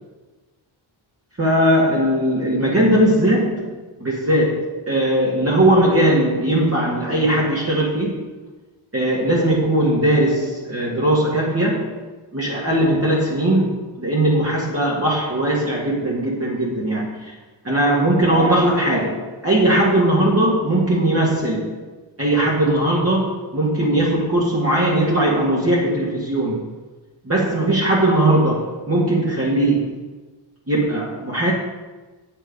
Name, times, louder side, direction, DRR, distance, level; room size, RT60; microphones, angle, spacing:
voice 1, 1.4-3.7 4.0-8.3 8.9-12.0 12.3-17.4 17.7-21.8 22.2-26.7 27.2-30.0 30.7-31.5, right 1 dB, 30° right, -5 dB, 1.8 m, -19 dB
8.9 x 7.7 x 5.2 m, 1.2 s
wide cardioid pair, 100°, 50 cm